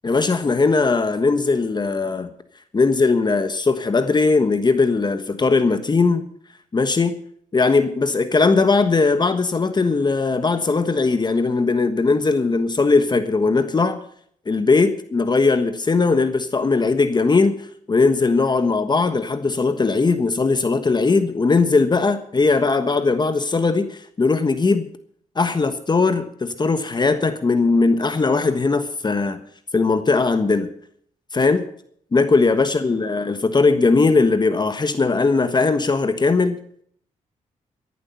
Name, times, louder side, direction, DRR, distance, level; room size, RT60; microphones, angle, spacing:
voice 1, 0.0-2.3 2.7-6.2 6.7-7.2 7.5-14.0 14.5-24.9 25.3-29.4 29.7-30.7 31.3-31.6 32.1-36.6, left 4 dB, 35° left, 10 dB, 1.3 m, -19 dB
15.0 x 11.0 x 5.7 m, 0.63 s
cardioid pair, 75°, 13 cm